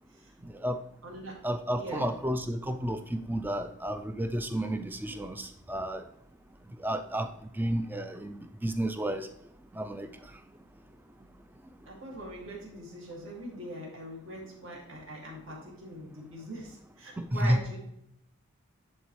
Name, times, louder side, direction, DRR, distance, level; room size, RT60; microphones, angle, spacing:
voice 1, 0.4-0.8 1.4-6.0 6.8-7.3 7.6-9.3 9.7-10.1 17.2-17.6, right 1 dB, 10° right, 8 dB, 0.3 m, -31 dB
voice 2, 1.0-1.4 1.7-2.1 11.9-17.8, right 1 dB, 60° right, -3 dB, 2.2 m, -42 dB
10.5 x 4.1 x 3.1 m, 0.79 s
head